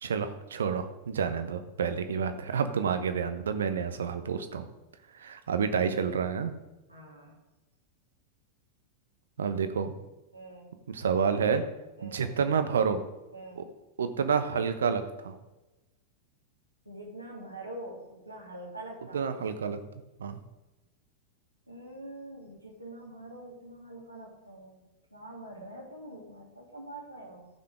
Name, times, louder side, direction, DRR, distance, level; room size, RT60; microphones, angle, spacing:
voice 1, 0.0-4.7 5.2-6.5 9.4-9.9 10.9-11.6 12.0-13.0 13.6-13.7 14.0-15.4 19.1-19.8 20.2-20.4, right 6 dB, 65° right, 9 dB, 0.9 m, -29 dB
voice 2, 6.9-7.4 10.3-10.7 12.0-12.3 13.3-13.7 16.8-19.3 21.7-24.8 25.1-27.5, right 1 dB, 90° right, -2 dB, 2.6 m, -45 dB
14.5 x 5.9 x 4.9 m, 1.1 s
figure-of-eight pair, 90°, 0 cm